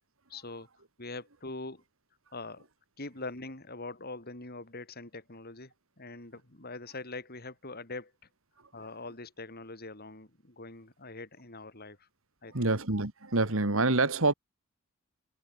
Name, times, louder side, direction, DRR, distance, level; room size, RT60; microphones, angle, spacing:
voice 1, 0.3-0.7 1.0-1.8 2.3-2.7 3.0-8.1 8.7-12.1 12.4-12.7, left 2 dB, 45° left, 4.5 m, -43 dB
voice 2, 12.5-14.3, right 2 dB, 70° right, 2.1 m, -26 dB
head